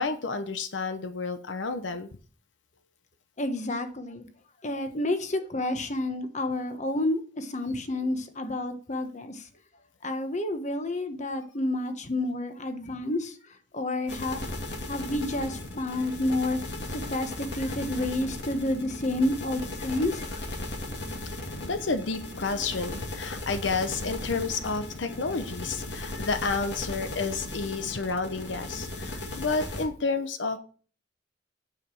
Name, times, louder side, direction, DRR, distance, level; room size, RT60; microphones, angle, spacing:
voice 1, 0.0-2.1 21.6-30.6, left 4 dB, 85° left, 9 dB, 0.9 m, -30 dB
voice 2, 3.4-4.2 4.6-9.5 10.0-13.3 13.7-14.5 14.9-20.4, left 1 dB, 40° left, 8 dB, 1.2 m, -30 dB
sound 1, 14.1-29.8, left 2 dB, 65° left, 2.3 m, -37 dB
9.0 x 5.0 x 6.2 m, 0.40 s
head